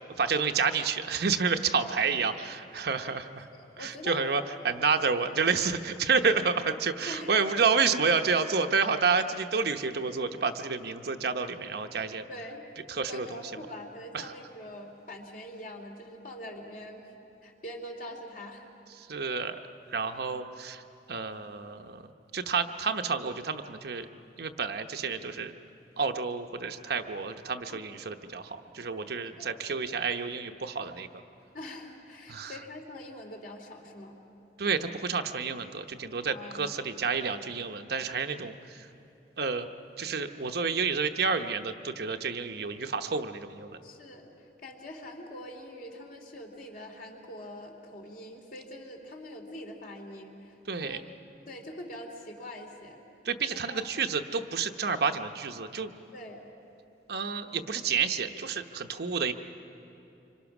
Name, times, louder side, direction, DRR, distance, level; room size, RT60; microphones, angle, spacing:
voice 1, 0.2-3.5 3.8-12.3 12.9-13.4 14.1-14.3 19.0-19.6 19.9-20.8 21.1-24.1 24.4-25.5 26.0-31.1 32.3-32.5 34.6-38.9 39.4-39.7 40.0-43.8 50.7-51.0 53.2-55.9 57.1-59.3, right 5 dB, 60° right, 6 dB, 0.9 m, -29 dB
voice 2, 3.5-4.8 7.1-7.3 12.3-12.6 13.1-17.1 17.4-18.7 27.7-27.8 29.4-29.5 31.5-34.1 36.3-36.7 43.8-51.0 51.5-53.0 53.5-53.9 56.1-56.4, left 1 dB, 50° left, 1 dB, 2.8 m, -44 dB
26.5 x 24.5 x 6.0 m, 2.8 s
head